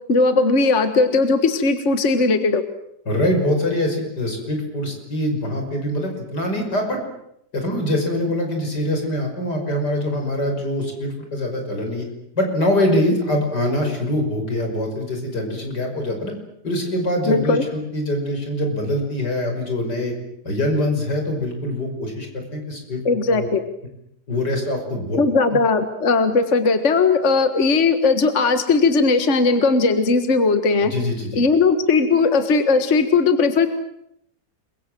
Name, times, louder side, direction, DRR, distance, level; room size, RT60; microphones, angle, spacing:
voice 1, 0.1-2.6 17.3-17.6 23.1-23.6 25.2-30.9 31.3-33.7, left 4 dB, 45° left, 9 dB, 1.8 m, -18 dB
voice 2, 3.1-7.0 7.5-12.1 12.4-16.3 16.6-20.1 20.4-23.0 23.3-23.5 24.3-25.2 30.8-31.4, left 1 dB, 80° left, 3 dB, 6.5 m, -23 dB
28.5 x 22.5 x 7.7 m, 0.77 s
omnidirectional pair, 1.8 m